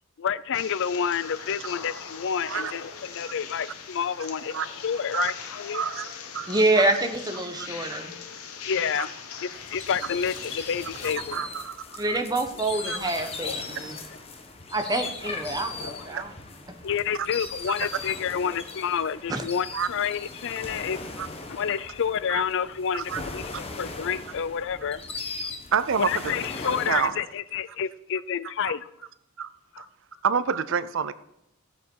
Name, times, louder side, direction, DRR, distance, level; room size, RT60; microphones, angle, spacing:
voice 1, 0.2-4.6 4.8-5.8 8.6-11.4 11.9-12.0 13.0-13.6 15.8-16.1 16.8-21.0 21.5-25.0 26.0-28.9 29.7-29.9, left 7 dB, 60° left, 0.4 m, -29 dB
sound 1, 0.5-11.1, left 6 dB, 85° left, 1.3 m, -40 dB
voice 2, 5.7-6.1 6.3-6.9 7.6-8.0 11.0-12.2 12.9-13.0 16.1-16.2 19.7-19.9 21.2-21.3 22.3-22.4 22.9-23.2 23.5-23.6 25.7-26.3 26.6-27.2 28.6-28.7 29.4-29.5 29.8-29.9 30.2-31.1, right 7 dB, 60° right, 0.5 m, -28 dB
voice 3, 6.5-8.2 12.0-14.0 14.7-16.3 19.3-19.4, right 2 dB, 20° right, 1.2 m, -26 dB
sound 2, 9.5-27.1, left 3 dB, 30° left, 1.4 m, -39 dB
15.0 x 8.4 x 4.7 m
head